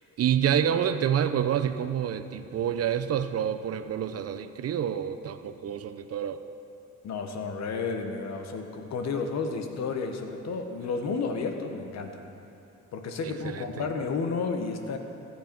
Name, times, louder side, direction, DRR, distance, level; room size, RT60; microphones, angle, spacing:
voice 1, 0.2-6.4 13.2-13.8, right 9 dB, 55° right, 11 dB, 0.5 m, -28 dB
voice 2, 7.0-12.2 12.9-15.0, left 4 dB, 60° left, 5 dB, 1.1 m, -32 dB
14.5 x 7.5 x 4.5 m, 2.8 s
cardioid pair, 90°, 30 cm